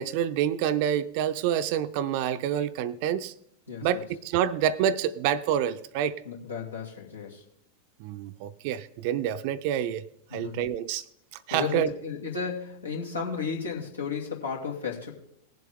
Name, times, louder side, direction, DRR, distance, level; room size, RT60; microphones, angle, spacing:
voice 1, 0.0-3.3 3.8-6.2 8.0-10.0 10.3-11.0 11.5-11.9, right 9 dB, 45° right, 13 dB, 0.6 m, -27 dB
voice 2, 3.7-4.1 6.2-7.4 10.3-10.6 11.5-15.1, left 5 dB, 80° left, -2 dB, 2.6 m, -34 dB
19.0 x 7.7 x 3.6 m, 0.73 s
figure-of-eight pair, 90°, 0 cm